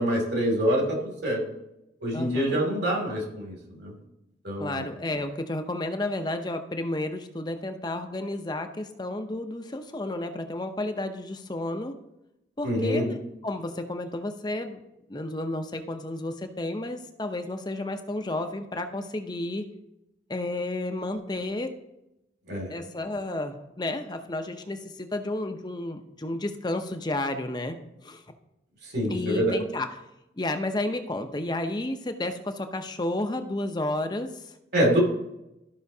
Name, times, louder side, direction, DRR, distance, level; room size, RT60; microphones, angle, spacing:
voice 1, 0.0-1.4 2.0-3.9 4.4-4.8 12.6-13.1 22.5-22.7 28.9-29.5 34.7-35.0, equal, 65° right, 0 dB, 2.5 m, -26 dB
voice 2, 2.1-2.6 4.6-11.9 12.6-14.8 15.1-19.7 20.3-21.7 22.7-27.8 28.0-28.2 29.1-29.9 30.4-34.5, left 2 dB, 25° left, 7 dB, 0.6 m, -31 dB
13.5 x 5.7 x 2.7 m, 0.89 s
head